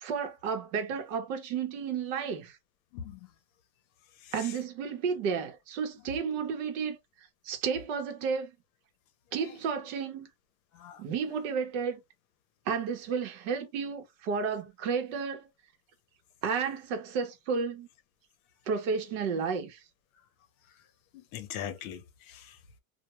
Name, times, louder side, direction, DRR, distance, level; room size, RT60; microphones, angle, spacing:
voice 1, 0.0-2.6 4.3-7.0 7.4-8.5 9.3-10.3 11.0-12.0 12.7-15.5 16.4-17.9 18.7-19.8, right 6 dB, 60° right, 0.8 m, -32 dB
voice 2, 4.2-4.5 9.4-9.5 10.7-11.0 21.1-22.8, left 9 dB, 70° left, 0.7 m, -42 dB
2.2 x 2.1 x 2.9 m
supercardioid pair, 175°, 43 cm